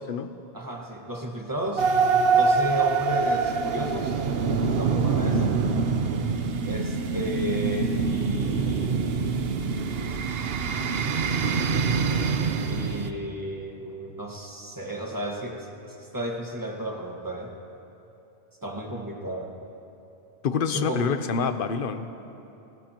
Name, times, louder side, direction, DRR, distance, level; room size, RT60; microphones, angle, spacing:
voice 1, 0.5-1.9 2.3-4.2 4.8-5.6 6.6-9.1 12.6-17.5 18.6-19.5 20.7-21.0, equal, 20° right, 0 dB, 1.6 m, -33 dB
sound 1, 1.8-13.1, right 5 dB, 65° right, 1.0 m, -25 dB
voice 2, 20.4-22.1, left 5 dB, 55° left, 10 dB, 0.9 m, -27 dB
29.0 x 15.0 x 3.0 m, 2.9 s
omnidirectional pair, 1.1 m